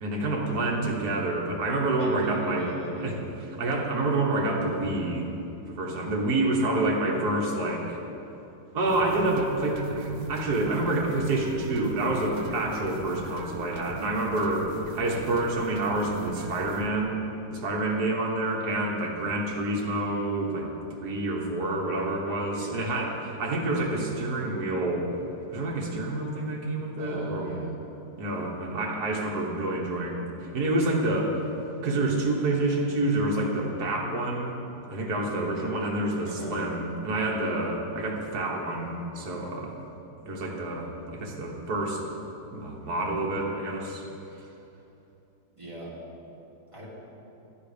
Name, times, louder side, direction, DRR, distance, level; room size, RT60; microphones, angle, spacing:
voice 1, 0.0-2.7 3.0-3.1 3.6-5.3 5.7-8.0 8.7-17.2 17.5-25.1 25.5-27.5 28.2-31.4 31.8-34.6 34.9-39.7 40.3-42.0 42.5-44.0, right 2 dB, 55° right, -1 dB, 1.7 m, -28 dB
voice 2, 2.0-3.2 22.5-22.8 27.0-27.8 36.2-36.6 45.6-45.9 46.7-46.9, right 1 dB, 15° right, -7 dB, 2.2 m, -39 dB
sound 1, 8.9-16.9, right 3 dB, 75° right, 1.3 m, -41 dB
10.5 x 8.3 x 5.1 m, 2.9 s
omnidirectional pair, 2.1 m